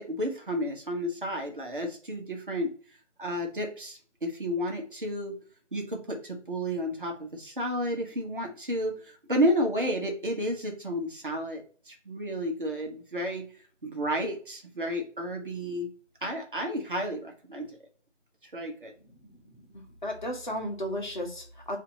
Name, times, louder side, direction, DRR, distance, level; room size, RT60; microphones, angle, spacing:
voice 1, 0.0-2.7 3.2-5.4 5.7-13.5 13.8-15.9 16.2-17.8 18.4-18.9, equal, 45° right, 1 dB, 1.2 m, -31 dB
voice 2, 19.7-21.8, left 1 dB, 40° left, 2 dB, 1.1 m, -34 dB
4.2 x 2.8 x 3.8 m, 0.42 s
figure-of-eight pair, 160°, 37 cm